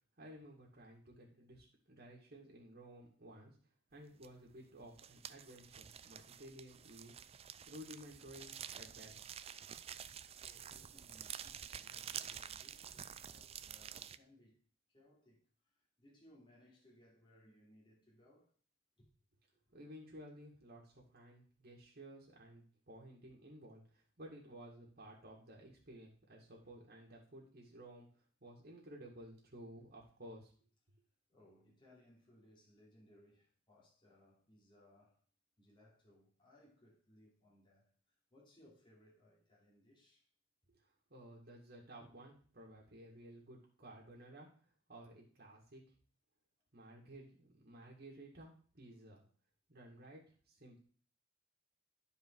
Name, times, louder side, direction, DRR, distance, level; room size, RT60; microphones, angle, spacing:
voice 1, 0.2-3.5 3.9-7.2 7.7-9.2 19.7-30.5 40.7-44.5 44.9-45.8 46.7-49.2 49.7-50.8, right 1 dB, 50° right, 2.1 m, -55 dB
sound 1, 4.2-4.5 4.8-14.2, right 9 dB, 30° right, 0.4 m, -49 dB
voice 2, 10.4-14.6 14.9-18.5 19.0-19.1 31.3-35.2 35.6-40.3, left 1 dB, 25° left, 3.0 m, -66 dB
11.0 x 4.9 x 4.7 m
head